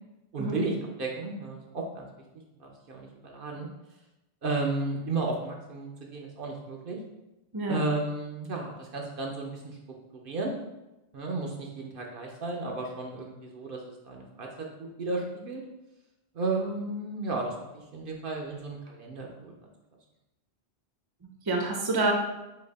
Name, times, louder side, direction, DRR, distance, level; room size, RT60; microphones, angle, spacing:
voice 1, 0.3-2.1 2.6-3.7 4.4-7.0 7.7-9.6 10.1-10.5 11.1-15.6 16.3-19.5, right 3 dB, 60° right, 0 dB, 0.8 m, -33 dB
voice 2, 7.5-7.9 21.2-22.1, right 2 dB, 30° right, 0 dB, 0.6 m, -28 dB
3.9 x 2.9 x 4.0 m, 0.97 s
omnidirectional pair, 1.1 m